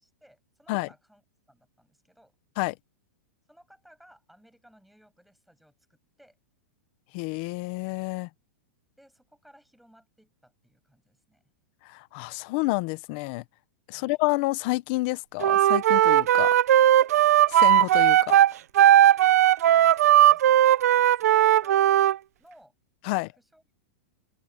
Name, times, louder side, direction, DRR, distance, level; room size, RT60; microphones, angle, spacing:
voice 1, 0.0-2.3 3.5-6.4 9.0-11.4 13.9-14.2 19.2-22.7 23.1-23.6, equal, ahead, 7.8 m, -59 dB
voice 2, 7.1-8.3 11.8-13.4 13.9-16.5 17.5-18.4 23.0-23.3, left 23 dB, 40° left, 0.9 m, -29 dB
Wind instrument woodwind instrument, 15.4-22.2, right 12 dB, 75° right, 0.6 m, -18 dB
open air
supercardioid pair, 165°, 8 cm